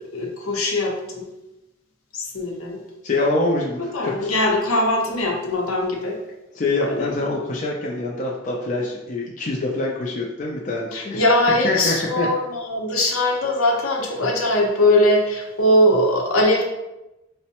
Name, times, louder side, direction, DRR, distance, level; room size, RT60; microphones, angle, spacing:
voice 1, 0.1-1.3 2.1-2.8 3.9-6.2 6.8-7.1 10.9-16.6, left 1 dB, 75° left, -1 dB, 0.7 m, -21 dB
voice 2, 3.0-4.3 6.5-11.2 11.6-12.3, left 2 dB, 35° left, -3 dB, 0.4 m, -25 dB
5.2 x 2.1 x 2.8 m, 0.96 s
head